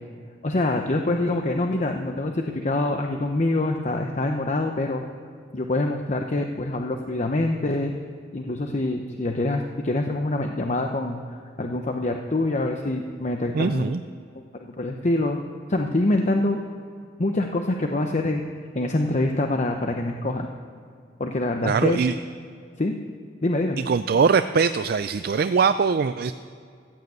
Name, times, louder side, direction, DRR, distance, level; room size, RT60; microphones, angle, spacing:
voice 1, 0.4-5.0 5.5-7.9 8.3-13.8 14.5-15.4 15.7-16.6 17.2-18.4 18.7-20.5 21.2-22.0 22.8-23.0 23.4-23.8, left 2 dB, 40° left, 4 dB, 0.8 m, -25 dB
voice 2, 13.5-14.0 21.6-22.2 23.9-26.3, right 5 dB, 55° right, 11 dB, 0.4 m, -21 dB
14.5 x 9.5 x 8.0 m, 2.3 s
head